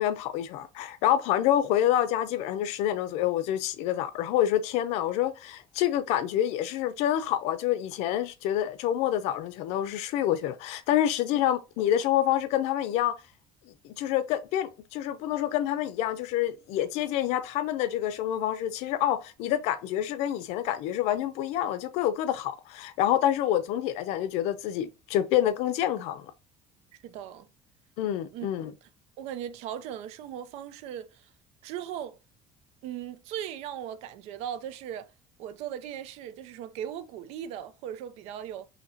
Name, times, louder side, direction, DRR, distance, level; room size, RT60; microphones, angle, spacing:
voice 1, 0.0-13.2 13.8-26.3 28.0-28.7, left 11 dB, 75° left, 0.6 m, -27 dB
voice 2, 27.0-27.5 28.3-28.5 29.2-31.3 31.6-32.2 32.8-35.1 35.4-38.7, right 10 dB, 70° right, 0.5 m, -38 dB
5.8 x 2.9 x 2.8 m
cardioid pair, 155°, 11 cm